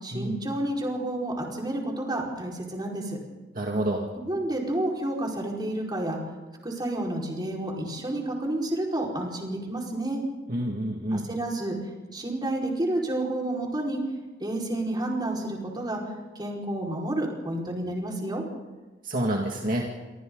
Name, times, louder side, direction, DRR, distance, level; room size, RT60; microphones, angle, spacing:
voice 1, 0.0-3.2 4.2-6.2 6.6-10.2 11.1-11.7 12.1-14.0 14.4-16.0 16.3-18.4, right 1 dB, 25° right, -2 dB, 4.9 m, -30 dB
voice 2, 3.5-4.1 10.5-11.3 19.0-19.9, right 1 dB, 50° right, 0 dB, 2.2 m, -28 dB
27.0 x 24.5 x 4.0 m, 1.2 s
head